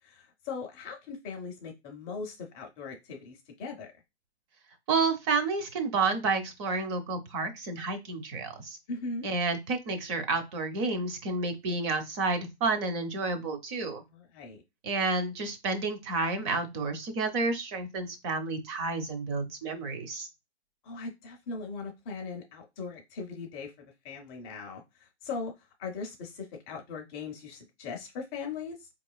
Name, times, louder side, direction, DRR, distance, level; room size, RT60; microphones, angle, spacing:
voice 1, 0.0-3.9 8.9-9.3 14.1-14.6 20.8-23.7 24.0-28.9, left 4 dB, 15° left, 3 dB, 0.5 m, -39 dB
voice 2, 4.9-8.8 9.2-14.0 14.8-20.3, right 3 dB, 25° right, 7 dB, 0.6 m, -30 dB
4.3 x 3.0 x 2.3 m, 0.23 s
hypercardioid pair, 140°, 33 cm